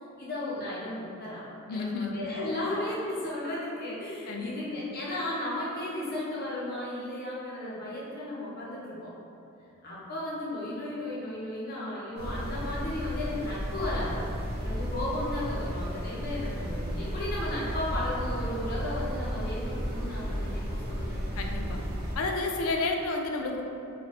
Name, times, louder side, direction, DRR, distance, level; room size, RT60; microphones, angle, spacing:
voice 1, 0.2-9.1 9.8-21.2, left 1 dB, 45° left, -7 dB, 0.9 m, -35 dB
voice 2, 1.7-2.3 4.3-4.5 21.4-21.8 22.1-23.6, left 3 dB, 70° left, 2 dB, 0.4 m, -31 dB
sound 1, 12.2-22.2, equal, 50° right, 0.6 m, -33 dB
3.1 x 2.6 x 4.2 m, 2.8 s
head